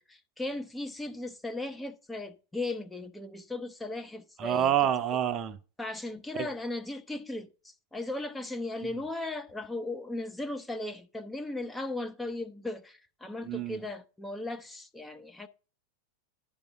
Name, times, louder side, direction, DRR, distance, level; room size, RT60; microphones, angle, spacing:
voice 1, 0.0-4.7 5.8-15.5, left 2 dB, 10° left, 0.6 m, -37 dB
voice 2, 4.4-5.6 6.4-6.5 13.5-13.8, right 10 dB, 30° right, 0.6 m, -27 dB
10.5 x 3.5 x 6.0 m
figure-of-eight pair, 90°, 0 cm